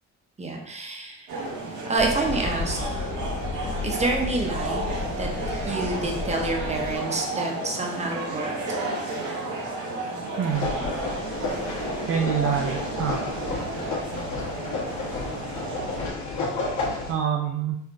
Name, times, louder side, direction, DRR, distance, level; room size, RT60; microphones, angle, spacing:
voice 1, 0.4-1.3 1.9-3.0 3.8-4.9 5.2-8.5, right 2 dB, 20° right, 1 dB, 0.8 m, -28 dB
sound 1, 1.3-16.1, right 2 dB, 70° right, 0.9 m, -32 dB
sound 2, 2.0-7.0, left 4 dB, 40° left, 0.7 m, -33 dB
voice 2, 10.4-10.7 12.1-13.2 17.1-17.8, right 8 dB, 45° right, 1 dB, 0.4 m, -26 dB
sound 3, 10.5-17.1, left 3 dB, 70° left, 1.1 m, -31 dB
4.3 x 2.4 x 2.5 m, 0.77 s
cardioid pair, 90°, 30 cm